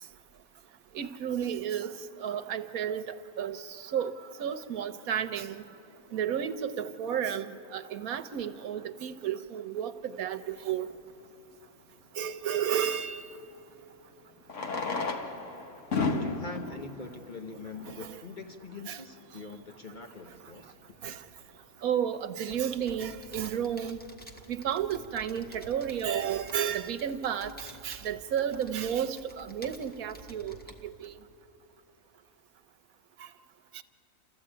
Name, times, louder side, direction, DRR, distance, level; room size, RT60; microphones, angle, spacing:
voice 1, 0.9-1.9 2.2-5.6 6.1-10.9 12.2-13.3 17.8-18.2 18.9-19.0 21.0-21.2 21.8-24.0 24.5-31.1 33.7-33.8, right 9 dB, 70° right, 10 dB, 1.3 m, -32 dB
Fireworks, 10.9-11.0 13.3-13.4 14.4-18.2 18.9-19.0 19.2-19.3 19.5-19.6 20.2-20.4, left 3 dB, 55° left, 1.7 m, -33 dB
voice 2, 16.1-20.7, left 3 dB, 35° left, 4 dB, 0.9 m, -43 dB
sound 1, 22.5-31.1, right 2 dB, 5° left, 1.4 m, -51 dB
28.0 x 14.0 x 8.8 m, 2.9 s
omnidirectional pair, 1.6 m